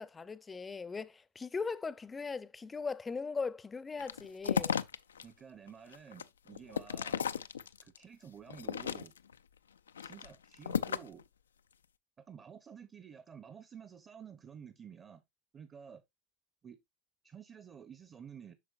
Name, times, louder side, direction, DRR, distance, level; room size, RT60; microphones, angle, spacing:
voice 1, 0.0-4.8, left 4 dB, 20° left, 0.6 m, -39 dB
sound 1, 4.0-5.2 5.7-8.0 8.5-9.4 9.9-11.2, left 7 dB, 80° left, 0.4 m, -35 dB
voice 2, 5.2-7.3 7.8-9.1 10.0-11.2 12.2-15.2 15.5-16.0 16.6-16.8 17.2-18.5, right 7 dB, 30° right, 0.9 m, -51 dB
8.4 x 6.2 x 2.5 m
hypercardioid pair, 85°, 0 cm